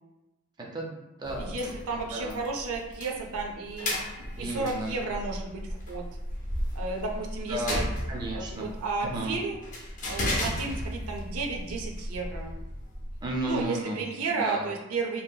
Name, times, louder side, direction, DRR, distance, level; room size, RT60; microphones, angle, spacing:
voice 1, 0.6-2.4 4.4-4.9 7.5-8.7 9.0-9.4 13.2-14.0 14.3-14.7, right 2 dB, 20° right, -1 dB, 0.4 m, -34 dB
sound 1, 1.2-13.6, left 1 dB, 35° left, 0.5 m, -35 dB
voice 2, 1.3-6.0 6.7-7.9 8.3-9.6 10.1-12.5 13.5-15.2, right 3 dB, 85° right, 1 dB, 0.5 m, -33 dB
2.7 x 2.7 x 2.2 m, 0.96 s
head